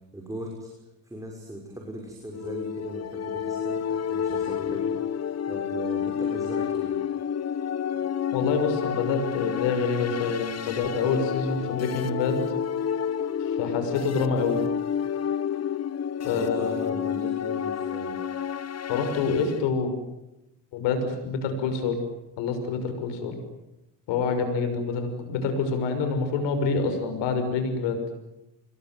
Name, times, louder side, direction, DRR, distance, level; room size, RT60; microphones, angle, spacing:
voice 1, 0.1-6.9 16.2-18.2, right 1 dB, 10° right, 0 dB, 6.2 m, -39 dB
sound 1, 2.3-19.6, left 8 dB, 35° left, 1.3 m, -30 dB
voice 2, 8.3-12.4 13.4-14.6 16.3-16.9 18.9-19.9 20.7-22.0 22.4-23.4 24.1-28.0, left 4 dB, 90° left, 8 dB, 6.3 m, -26 dB
27.0 x 21.5 x 9.4 m, 0.93 s
cardioid pair, 110°, 42 cm